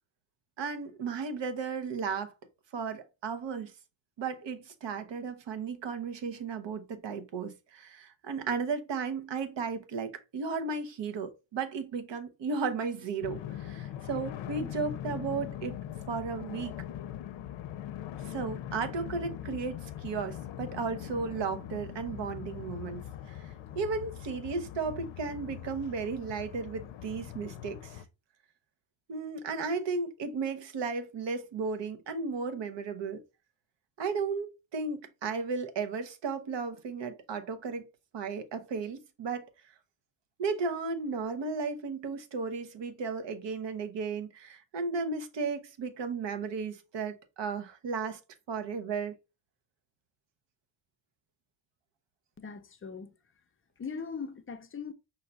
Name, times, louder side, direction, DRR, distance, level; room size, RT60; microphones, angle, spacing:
voice 1, 0.6-2.3 2.7-3.7 4.2-15.7 16.1-16.8 18.2-28.0 29.1-33.2 34.0-37.9 38.1-39.5 40.4-48.2 48.5-49.2, right 4 dB, 65° right, 0.9 m, -34 dB
sound 1, 13.2-28.0, left 11 dB, 70° left, 0.6 m, -41 dB
voice 2, 52.4-53.1 53.8-54.9, left 5 dB, 30° left, 0.5 m, -40 dB
5.5 x 2.3 x 3.8 m
cardioid pair, 125°, 47 cm